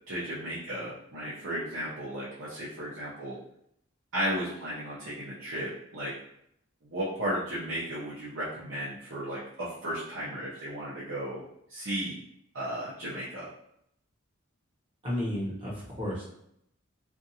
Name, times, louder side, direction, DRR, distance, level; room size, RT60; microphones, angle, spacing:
voice 1, 0.1-3.4 4.1-6.1 6.8-11.4 11.7-12.2 12.5-13.5, equal, 60° right, -9 dB, 0.7 m, -34 dB
voice 2, 15.0-16.2, left 1 dB, 25° right, -7 dB, 0.9 m, -32 dB
2.5 x 2.4 x 2.7 m, 0.74 s
head